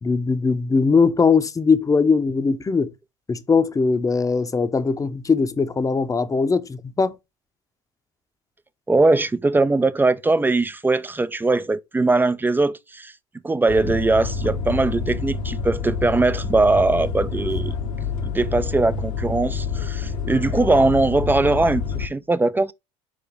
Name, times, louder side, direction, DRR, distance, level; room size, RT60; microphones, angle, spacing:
voice 1, 0.0-2.9 3.3-7.1, left 4 dB, 20° left, 0.8 m, -20 dB
voice 2, 8.9-13.1 13.4-17.7 18.2-22.7, right 3 dB, 10° right, 0.4 m, -20 dB
sound 1, 13.7-22.1, left 5 dB, 80° left, 1.5 m, -27 dB
5.0 x 5.0 x 5.1 m
hypercardioid pair, 85°, 17 cm